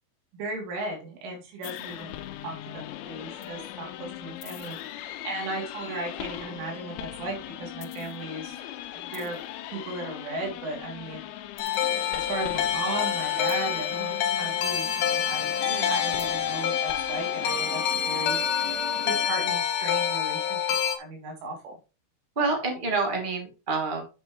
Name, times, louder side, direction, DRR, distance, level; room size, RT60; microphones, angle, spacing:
voice 1, 0.3-2.2 2.4-8.6 9.0-9.4 9.7-11.2 12.1-15.5 15.9-18.4 19.0-21.7, right 2 dB, 75° right, 0 dB, 5.4 m, -36 dB
sound 1, 1.6-19.3, left 12 dB, 90° left, 3.2 m, -39 dB
sound 2, 11.6-21.0, left 8 dB, 65° left, 2.8 m, -27 dB
voice 2, 22.3-24.0, right 4 dB, 30° right, 1 dB, 0.8 m, -28 dB
10.0 x 7.8 x 3.1 m, 0.31 s
omnidirectional pair, 5.6 m